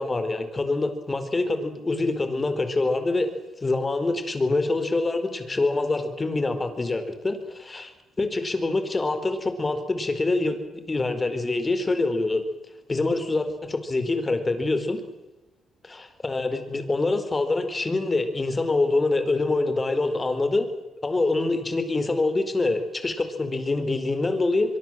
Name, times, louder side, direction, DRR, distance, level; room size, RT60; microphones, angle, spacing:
voice 1, 0.0-3.3 3.6-7.9 8.2-10.6 10.9-12.4 12.9-15.0 15.8-20.7 21.0-24.8, left 2 dB, 25° left, 9 dB, 4.5 m, -25 dB
24.5 x 23.0 x 7.6 m, 1.0 s
cardioid pair, 90°, 0 cm